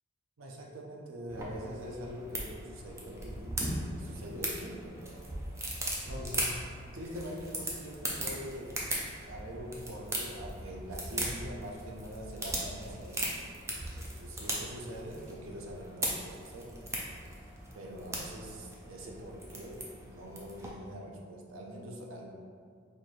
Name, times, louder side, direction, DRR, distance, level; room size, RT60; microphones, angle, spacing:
voice 1, 0.4-5.3 6.0-6.6 6.9-8.8 9.2-13.3 13.9-16.8 17.7-22.3, equal, 70° right, -1 dB, 0.6 m, -43 dB
sound 1, 1.3-20.7, right 1 dB, 15° right, 0.4 m, -39 dB
4.1 x 2.6 x 3.1 m, 2.1 s
head